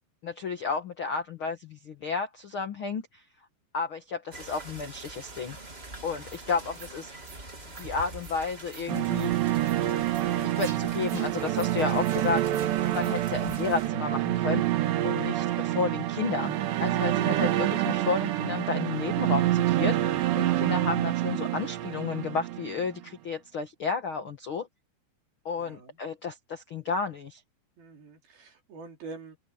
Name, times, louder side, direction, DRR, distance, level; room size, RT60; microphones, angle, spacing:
voice 1, 0.2-3.2 3.7-5.6 6.0-7.1 7.8-9.3 10.4-12.7 12.9-14.6 15.0-24.7 25.4-27.4, left 5 dB, 80° left, 1.2 m, -32 dB
sound 1, 4.3-13.9, right 2 dB, 15° right, 2.6 m, -45 dB
sound 2, 6.3-6.4 6.7-6.9 7.2-7.4 7.7-7.9 8.2-8.4 8.7-8.9 9.2-9.3 9.6-9.8 10.1-10.3 10.6-10.8 11.1-11.3 11.5-11.7 12.0-12.2 12.5-12.7 13.0-13.1 13.5-13.6, right 5 dB, 45° right, 4.9 m, -48 dB
sound 3, 8.9-23.0, right 14 dB, 80° right, 3.6 m, -27 dB
voice 2, 25.6-26.0 27.8-29.4, right 3 dB, 60° right, 5.7 m, -45 dB
open air
omnidirectional pair, 4.9 m